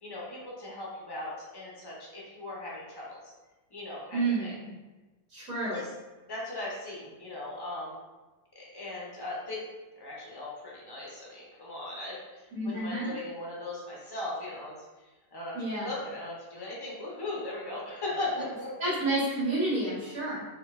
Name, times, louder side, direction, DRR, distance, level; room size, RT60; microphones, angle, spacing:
voice 1, 0.0-3.2 3.7-4.5 5.7-5.9 6.3-7.9 8.5-9.7 10.0-12.5 12.7-14.7 15.3-15.6 15.8-18.7, left 2 dB, 30° left, -5 dB, 0.4 m, -38 dB
voice 2, 4.1-4.7 5.3-5.8 12.5-13.1 15.5-15.9 18.8-20.5, right 2 dB, 65° right, -11 dB, 1.6 m, -30 dB
4.4 x 2.6 x 2.3 m, 1.2 s
omnidirectional pair, 1.7 m